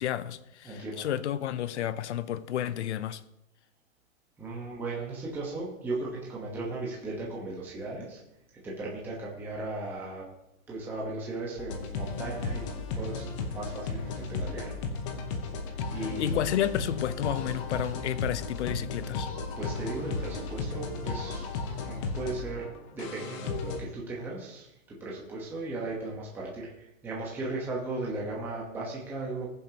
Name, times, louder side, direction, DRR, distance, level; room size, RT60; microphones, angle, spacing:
voice 1, 0.0-3.2 16.0-19.3, left 11 dB, 55° left, 0.7 m, -31 dB
voice 2, 0.6-1.1 4.4-8.2 8.5-10.3 10.7-12.6 12.9-13.3 13.5-14.9 15.9-16.4 19.6-29.5, right 2 dB, 5° right, 1.1 m, -36 dB
sound 1, 11.6-23.8, left 4 dB, 25° left, 0.9 m, -34 dB
20.5 x 7.3 x 2.9 m
supercardioid pair, 175°, 40 cm